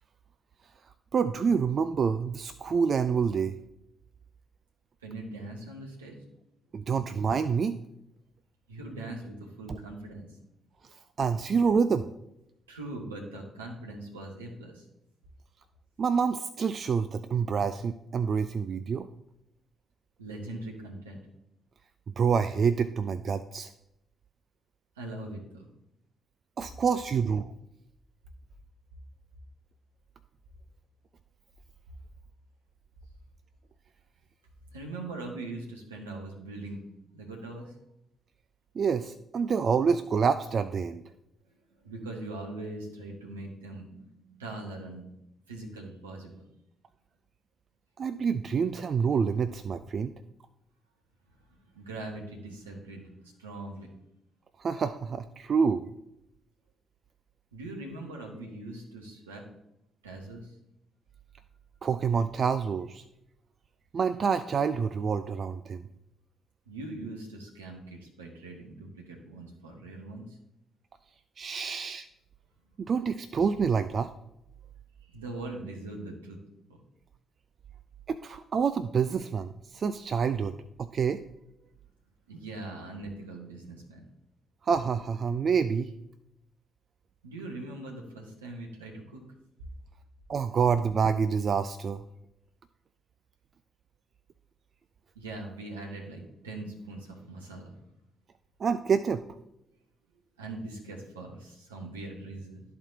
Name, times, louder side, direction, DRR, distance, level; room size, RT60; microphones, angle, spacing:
voice 1, 1.1-3.6 6.7-7.8 9.7-9.8 11.2-12.1 16.0-19.1 22.2-23.7 26.6-27.5 38.8-41.0 48.0-50.1 54.6-55.9 61.8-63.0 63.9-65.8 71.4-72.1 72.8-74.1 78.1-81.2 84.6-85.9 90.3-92.0 98.6-99.2, right 6 dB, 50° right, 12 dB, 0.3 m, -27 dB
voice 2, 5.0-6.2 8.7-10.3 12.7-14.8 20.2-21.2 25.0-25.7 34.7-36.8 37.1-37.7 41.8-45.0 45.5-46.3 51.5-53.9 57.5-59.4 60.0-60.6 66.7-70.4 71.5-71.6 75.1-76.4 82.3-84.0 87.2-89.2 95.1-97.8 100.4-102.6, right 2 dB, 85° right, 0 dB, 1.2 m, -41 dB
12.5 x 4.2 x 2.7 m, 0.83 s
figure-of-eight pair, 45°, 0 cm